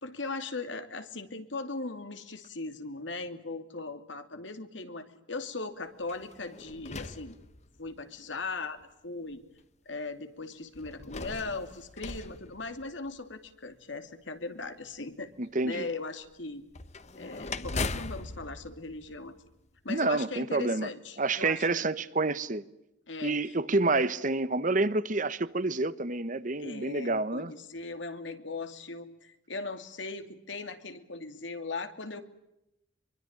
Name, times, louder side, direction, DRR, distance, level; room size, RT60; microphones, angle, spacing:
voice 1, 0.0-7.4 7.8-9.4 9.9-15.3 15.6-16.7 17.2-19.3 19.8-21.9 23.1-23.4 26.6-32.2, left 3 dB, 80° left, 2.7 m, -39 dB
sound 1, 6.0-8.0 8.8-8.9 10.7-13.3 16.7-19.8, left 3 dB, 35° left, 1.2 m, -39 dB
voice 2, 15.4-15.9 19.9-20.9 21.2-22.6 23.2-27.5, right 2 dB, 45° right, 1.2 m, -28 dB
24.5 x 23.5 x 8.8 m
head